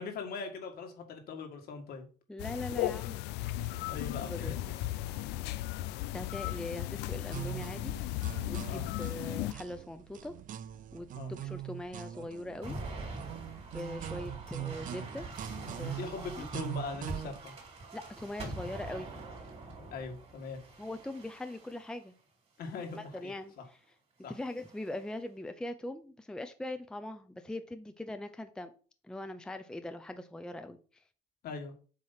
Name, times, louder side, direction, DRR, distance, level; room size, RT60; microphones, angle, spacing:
voice 1, 0.0-2.1 2.7-2.8 3.9-4.8 8.7-8.9 11.1-11.3 15.8-17.5 19.9-20.6 22.6-23.6 24.2-24.3 31.4-31.7, left 4 dB, 65° left, 4 dB, 1.9 m, -41 dB
voice 2, 2.3-3.2 4.2-4.6 6.1-7.9 8.5-10.3 10.9-12.8 13.7-15.3 15.8-16.5 17.9-19.1 20.8-22.1 22.9-23.8 24.3-28.7 29.0-31.0, left 1 dB, 5° left, 9 dB, 0.6 m, -41 dB
sound 1, 2.4-9.5, left 15 dB, 90° left, 0.4 m, -36 dB
sound 2, 7.2-17.4, right 12 dB, 50° right, 0.5 m, -43 dB
sound 3, 12.6-22.0 22.7-23.2 24.3-25.0, right 2 dB, 35° right, 3.3 m, -44 dB
7.6 x 3.1 x 5.7 m, 0.38 s
cardioid pair, 110°, 17 cm